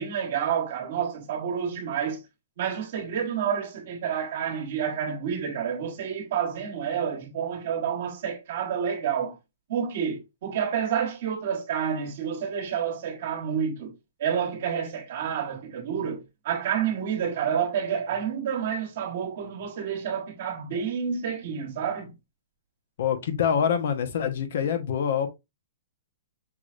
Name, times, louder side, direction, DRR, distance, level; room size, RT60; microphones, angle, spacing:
voice 1, 0.0-2.2 2.6-9.4 9.7-13.9 14.2-22.1, right 7 dB, 60° right, 1.3 m, -29 dB
voice 2, 23.0-25.3, left 8 dB, 65° left, 1.0 m, -25 dB
6.0 x 3.2 x 2.5 m
hypercardioid pair, 150°, 0 cm